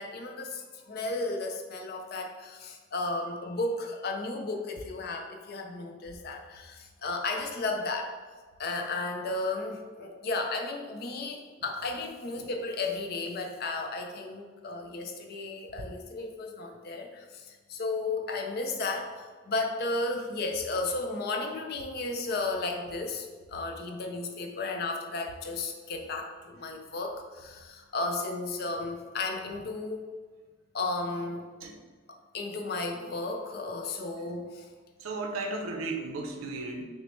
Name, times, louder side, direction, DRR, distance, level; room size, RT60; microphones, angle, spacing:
voice 1, 0.0-8.2 8.6-30.0 30.7-31.4 32.3-34.7, left 3 dB, 50° left, 3 dB, 0.4 m, -34 dB
voice 2, 35.0-36.8, right 3 dB, 85° right, 3 dB, 0.6 m, -35 dB
6.0 x 2.0 x 3.0 m, 1.4 s
head